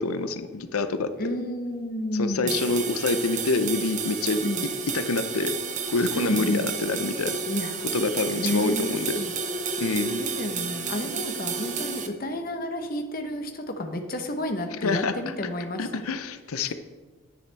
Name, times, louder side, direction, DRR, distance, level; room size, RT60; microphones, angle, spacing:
voice 1, 0.0-1.1 2.2-4.5 4.9-5.6 5.9-7.4 7.9-9.2 9.8-10.2 14.8-15.1 15.8-16.7, left 3 dB, 90° left, 10 dB, 0.7 m, -26 dB
voice 2, 1.2-2.5 4.4-4.6 6.1-6.7 7.5-7.7 8.4-9.3 10.2-15.9 16.6-16.7, left 1 dB, 45° left, 5 dB, 1.0 m, -31 dB
sound 1, 2.5-12.1, right 5 dB, 35° right, 0.7 m, -31 dB
10.0 x 10.0 x 3.5 m, 1.3 s
head